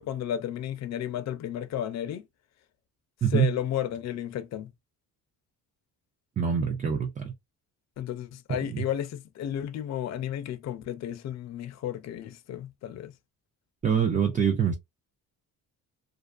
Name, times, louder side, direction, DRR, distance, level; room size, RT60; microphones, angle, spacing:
voice 1, 0.0-2.3 3.3-4.7 8.0-13.1, left 10 dB, 45° left, 0.4 m, -33 dB
voice 2, 3.2-3.5 6.4-7.3 8.7-8.8 13.8-14.7, right 7 dB, 20° right, 0.3 m, -24 dB
2.4 x 2.4 x 2.3 m
cardioid pair, 135°, 38 cm